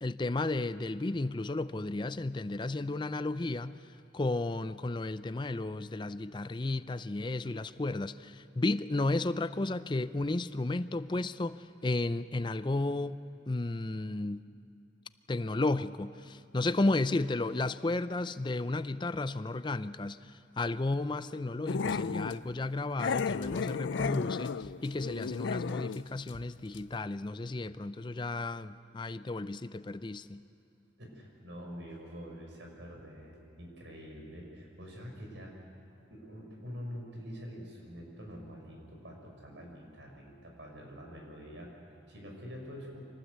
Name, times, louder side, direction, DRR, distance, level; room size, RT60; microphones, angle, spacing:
voice 1, 0.0-3.8 4.1-14.4 15.3-30.4, left 2 dB, 25° left, 14 dB, 0.5 m, -33 dB
Growling, 21.7-22.4 23.0-26.0 26.3-26.4 26.7-26.8, left 5 dB, 80° left, 0.4 m, -34 dB
voice 2, 31.0-35.6 36.1-43.0, equal, 75° right, 0 dB, 5.6 m, -46 dB
24.5 x 19.0 x 8.2 m, 2.8 s
head